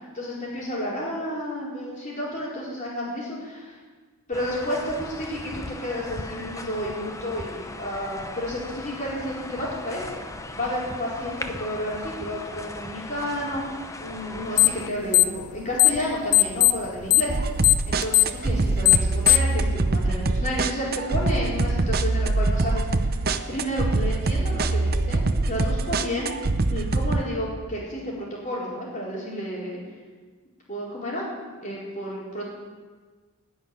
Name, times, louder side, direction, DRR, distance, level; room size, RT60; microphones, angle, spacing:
voice 1, 0.1-3.8 4.3-10.2 10.5-13.6 14.0-17.3 17.9-23.1 23.5-26.3 26.7-29.8 30.7-31.2 31.6-32.5, equal, 35° left, -5 dB, 4.4 m, -31 dB
sound 1, 4.3-14.9, left 2 dB, 15° left, 0.6 m, -38 dB
sound 2, 14.5-14.8 15.1-16.0 16.3-19.6, left 19 dB, 80° left, 0.6 m, -17 dB
sound 3, 17.3-27.2, right 2 dB, 45° right, 0.7 m, -24 dB
16.5 x 6.4 x 9.8 m, 1.4 s
head